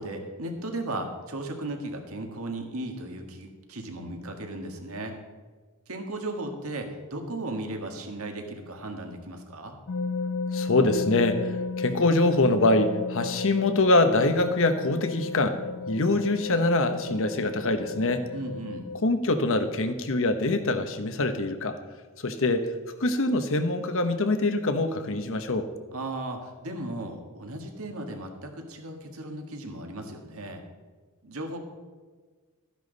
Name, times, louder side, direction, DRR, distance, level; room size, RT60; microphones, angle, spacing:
voice 1, 0.0-5.1 5.9-9.8 18.3-18.9 25.9-30.6 31.2-31.6, right 2 dB, 70° right, 3 dB, 1.8 m, -36 dB
sound 1, 9.9-19.0, left 4 dB, 85° left, 0.6 m, -34 dB
voice 2, 10.5-15.6 15.9-18.2 19.0-21.8 22.2-22.7 23.0-25.7, left 2 dB, 65° left, 8 dB, 1.0 m, -24 dB
13.5 x 10.5 x 4.1 m, 1.4 s
head